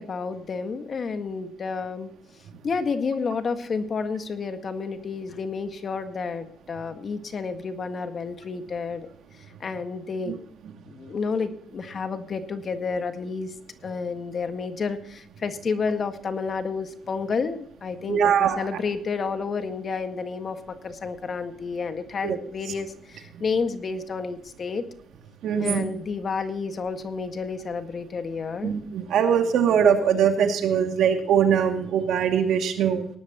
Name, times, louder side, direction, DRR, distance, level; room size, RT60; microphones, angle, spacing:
voice 1, 0.0-2.1 2.6-9.1 9.6-10.4 10.9-13.5 13.8-24.8 25.6-28.7, left 5 dB, 45° left, 8 dB, 1.7 m, -30 dB
voice 2, 18.1-18.7 22.2-22.4 25.4-25.9 28.6-33.1, right 8 dB, 80° right, 4 dB, 2.4 m, -22 dB
18.5 x 12.0 x 3.0 m, 0.66 s
cardioid pair, 90°, 0 cm